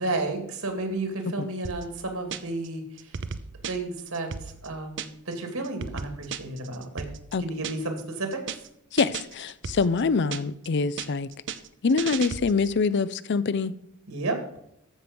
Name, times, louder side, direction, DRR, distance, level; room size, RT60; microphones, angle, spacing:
voice 1, 0.0-3.1 3.7-7.1 7.4-8.4 14.1-14.4, right 2 dB, 70° right, 2.4 m, -32 dB
sound 1, 1.6-2.7 3.0-5.3 5.6-8.0 8.3-8.7 9.0-10.7 11.0-12.8, right 6 dB, 55° right, 0.7 m, -36 dB
voice 2, 8.9-11.3 11.8-13.7, left 4 dB, 50° left, 0.5 m, -25 dB
14.5 x 6.2 x 5.2 m
head